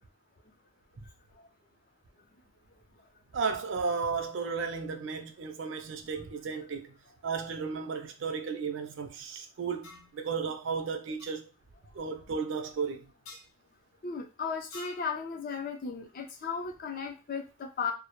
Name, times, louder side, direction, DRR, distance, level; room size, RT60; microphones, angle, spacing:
voice 1, 3.3-7.0 7.2-11.5 11.9-13.1, right 5 dB, 60° right, 0.4 m, -34 dB
sound 1, 9.8-10.1 11.2-11.3 13.2-13.5 14.7-15.1, left 2 dB, 85° left, 0.8 m, -47 dB
voice 2, 14.0-17.9, left 5 dB, 40° left, 0.4 m, -35 dB
2.0 x 2.0 x 2.9 m
head